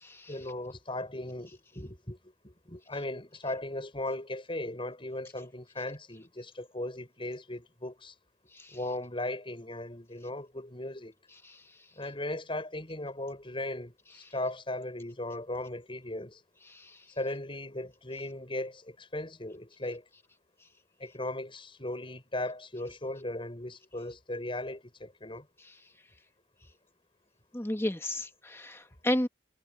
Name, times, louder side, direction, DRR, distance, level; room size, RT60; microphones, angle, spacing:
voice 1, 0.3-8.1 8.7-11.1 12.0-16.4 17.2-20.0 21.0-25.5, left 1 dB, 30° left, 6.5 m, -37 dB
voice 2, 27.5-29.3, left 1 dB, 15° left, 1.3 m, -32 dB
head